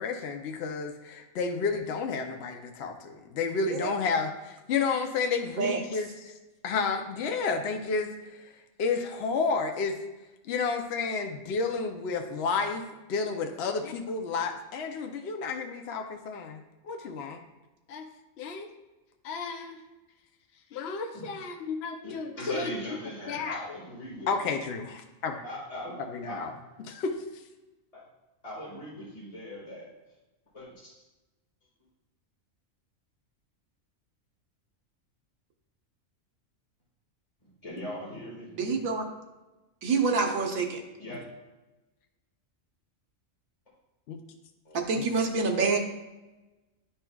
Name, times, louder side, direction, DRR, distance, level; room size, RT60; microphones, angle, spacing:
voice 1, 0.0-6.3 6.6-8.4 8.8-10.0 10.4-12.8 13.1-16.6 16.8-17.4 17.9-18.0 18.4-18.7 19.2-19.8 20.7-22.3 22.5-22.7 23.3-23.6 24.3-25.4 26.1-26.5 26.9-27.2 44.1-44.2 45.0-45.1, left 4 dB, 60° left, 4 dB, 0.8 m, -31 dB
voice 2, 22.0-24.5 25.4-26.8 27.9-28.0 28.4-29.9 30.5-30.9 37.6-38.8 41.0-41.2 44.6-44.8, left 1 dB, 25° left, -7 dB, 1.8 m, -39 dB
voice 3, 38.6-39.0 39.8-40.8 44.7-45.8, right 4 dB, 80° right, 3 dB, 1.3 m, -27 dB
11.0 x 4.4 x 2.3 m, 1.1 s
omnidirectional pair, 1.4 m